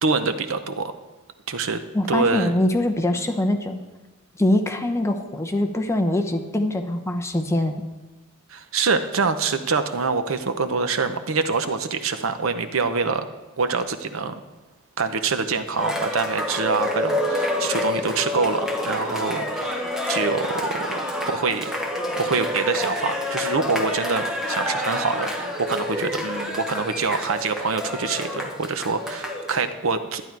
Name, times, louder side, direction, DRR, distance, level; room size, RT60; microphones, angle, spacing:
voice 1, 0.0-0.9 1.5-1.8 2.1-2.5 8.5-13.2 13.6-14.4 15.0-21.0 21.3-21.7 22.2-30.2, right 4 dB, 65° right, 9 dB, 0.8 m, -25 dB
voice 2, 1.9-3.8 4.4-7.8, left 1 dB, 15° left, 5 dB, 0.8 m, -23 dB
Cheering, 15.7-29.6, left 1 dB, ahead, 1.2 m, -28 dB
12.0 x 10.5 x 4.6 m, 1.1 s
head